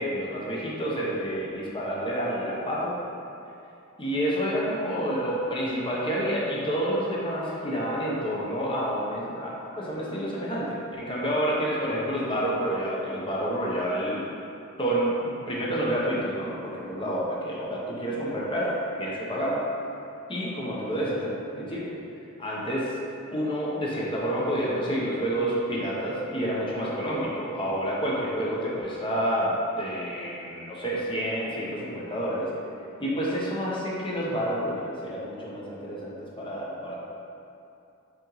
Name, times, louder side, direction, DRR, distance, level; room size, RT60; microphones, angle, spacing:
voice 1, 0.0-3.0 4.0-14.2 14.8-18.7 19.0-19.6 20.3-21.9 22.4-22.9 23.3-32.5 33.0-37.0, equal, 25° left, -6 dB, 1.0 m, -29 dB
7.7 x 3.8 x 3.2 m, 2.7 s
head